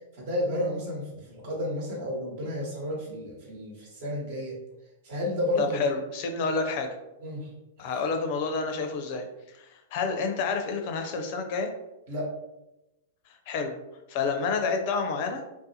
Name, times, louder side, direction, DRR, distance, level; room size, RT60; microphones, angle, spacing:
voice 1, 0.1-4.5 5.0-5.8 7.2-7.5 7.8-7.9 12.1-12.3, left 1 dB, 55° right, -3 dB, 1.0 m, -31 dB
voice 2, 5.6-6.9 7.8-9.3 9.5-11.7 13.5-13.7 14.1-15.4, left 4 dB, 50° left, 5 dB, 0.4 m, -29 dB
2.5 x 2.1 x 2.7 m, 0.94 s
hypercardioid pair, 105°, 0 cm